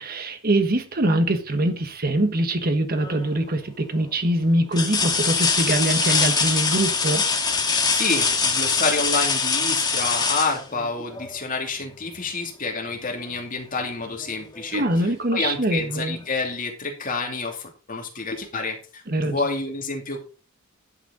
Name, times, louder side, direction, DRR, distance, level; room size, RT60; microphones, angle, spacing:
voice 1, 0.0-7.2 14.7-16.2 19.1-19.4, right 1 dB, 45° right, 1.3 m, -23 dB
sound 1, 3.0-3.4 4.0-4.1 4.7-11.4 13.2-13.3 13.8-14.8 16.1-16.2, left 5 dB, 20° left, 1.6 m, -23 dB
voice 2, 7.9-14.8 15.3-20.2, left 3 dB, 40° left, 2.6 m, -28 dB
11.0 x 8.3 x 3.9 m
head